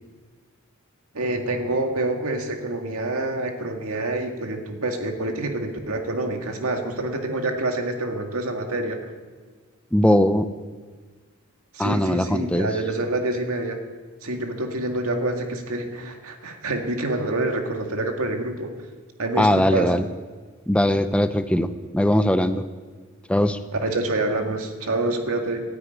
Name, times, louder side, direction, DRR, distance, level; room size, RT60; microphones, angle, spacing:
voice 1, 1.1-9.0 11.7-13.8 14.2-18.7 19.2-19.9 23.8-25.6, right 2 dB, 80° right, 3 dB, 2.0 m, -27 dB
voice 2, 9.9-10.5 11.8-12.7 19.4-20.1 20.7-22.7 23.3-23.6, left 1 dB, 5° left, 10 dB, 0.5 m, -20 dB
13.0 x 9.6 x 9.5 m, 1.4 s
head